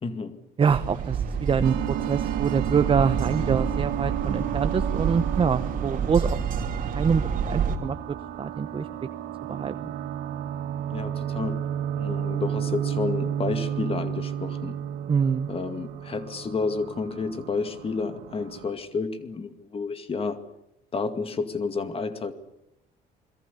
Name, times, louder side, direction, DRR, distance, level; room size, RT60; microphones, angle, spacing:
voice 1, 0.0-0.4 10.9-11.7 12.0-14.8 15.5-20.4 20.9-22.3, left 4 dB, 35° left, 2.2 m, -30 dB
voice 2, 0.6-1.8 2.1-6.4 6.9-8.0 8.4-8.9 9.5-9.9 15.1-15.5, right 6 dB, 30° right, 0.9 m, -25 dB
sound 1, 0.7-7.8, right 6 dB, 55° right, 3.0 m, -29 dB
sound 2, 1.6-18.7, right 10 dB, 80° right, 2.6 m, -32 dB
28.5 x 22.0 x 6.9 m
cardioid pair, 110°, 17 cm